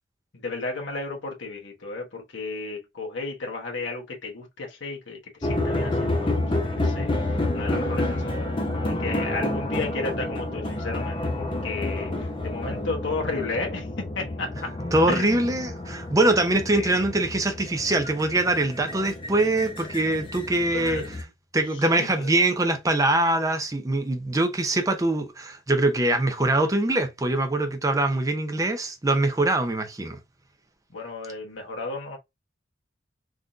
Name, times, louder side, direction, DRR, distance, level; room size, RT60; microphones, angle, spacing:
voice 1, 0.3-6.3 6.6-13.9 14.1-14.7 15.1-15.6 16.7-16.9 20.7-21.1 21.9-22.3 30.9-32.2, left 3 dB, 70° left, 1.1 m, -33 dB
sound 1, 5.4-21.2, left 1 dB, 25° left, 0.6 m, -29 dB
voice 2, 14.9-21.0 21.5-30.2, right 2 dB, 15° right, 0.5 m, -23 dB
3.6 x 2.6 x 2.4 m
head